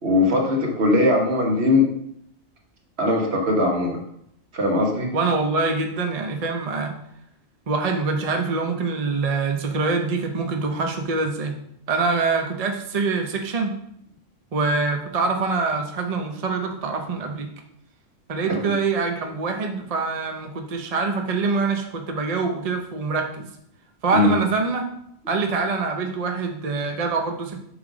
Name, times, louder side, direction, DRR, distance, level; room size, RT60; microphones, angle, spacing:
voice 1, 0.0-1.9 3.0-4.0 4.5-5.1 24.1-24.3, left 2 dB, 60° right, 0 dB, 1.5 m, -20 dB
voice 2, 5.1-6.9 7.7-11.6 11.9-13.7 14.5-17.5 18.3-23.5 24.0-24.8 25.3-27.6, right 4 dB, 40° right, 4 dB, 0.6 m, -24 dB
7.4 x 3.2 x 4.9 m, 0.74 s
omnidirectional pair, 1.2 m